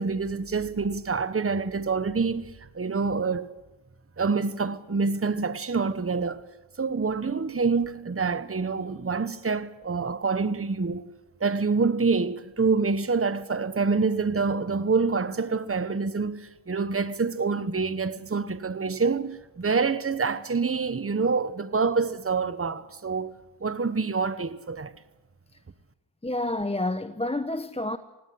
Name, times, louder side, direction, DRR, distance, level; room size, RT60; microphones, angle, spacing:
voice 1, 0.0-3.5 4.2-6.4 6.8-11.1 11.4-23.3 23.6-24.9, right 4 dB, 30° right, 1.1 m, -26 dB
voice 2, 26.2-28.0, left 2 dB, 15° left, 0.9 m, -29 dB
18.5 x 17.5 x 9.4 m
cardioid pair, 60°, 47 cm